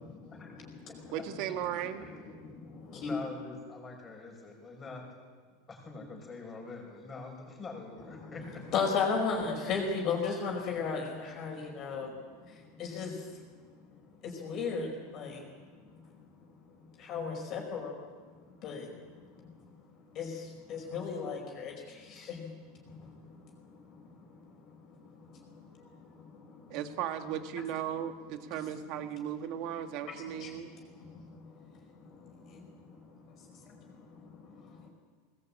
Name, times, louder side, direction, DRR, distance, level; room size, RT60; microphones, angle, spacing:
voice 1, 0.3-0.9 2.3-3.2 8.2-8.3 8.7-12.1 12.4-13.4 14.2-15.4 16.8-17.9 18.6-18.9 19.4-19.5 20.1-22.5 22.8-24.4 25.0-26.8 30.4-30.6 30.9-34.9, left 5 dB, 35° left, 0 dB, 4.9 m, -37 dB
voice 2, 1.1-2.1 26.7-30.7, right 10 dB, 45° right, 7 dB, 1.9 m, -36 dB
voice 3, 2.9-5.1 5.7-8.7, left 3 dB, 15° left, 1 dB, 5.9 m, -44 dB
20.5 x 19.5 x 8.7 m, 1.6 s
supercardioid pair, 160°, 0 cm